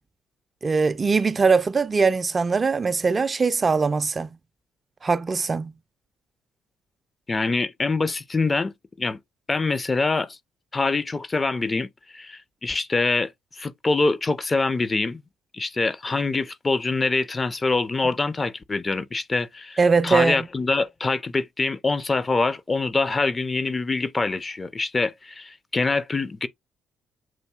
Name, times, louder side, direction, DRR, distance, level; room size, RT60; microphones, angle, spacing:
voice 1, 0.6-4.3 5.0-5.7 19.8-20.5, right 4 dB, 35° right, 0.3 m, -21 dB
voice 2, 7.3-8.7 9.0-9.2 9.5-10.4 10.7-11.9 12.1-15.2 15.5-26.5, left 3 dB, 30° left, 0.4 m, -25 dB
7.3 x 2.6 x 2.3 m
hypercardioid pair, 45°, 0 cm